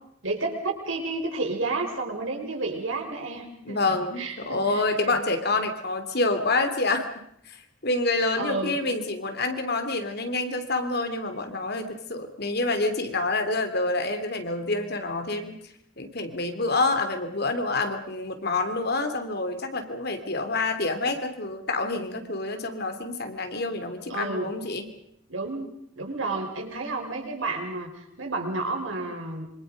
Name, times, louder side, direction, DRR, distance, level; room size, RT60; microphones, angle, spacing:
voice 1, 0.2-5.1 8.4-8.7 24.1-24.5 25.3-25.7 26.0-27.9 28.2-29.5, right 3 dB, 80° right, 2 dB, 6.1 m, -31 dB
voice 2, 3.7-7.1 7.4-15.6 16.0-24.9, left 2 dB, 55° left, 7 dB, 3.0 m, -27 dB
27.0 x 25.5 x 5.3 m, 0.73 s
head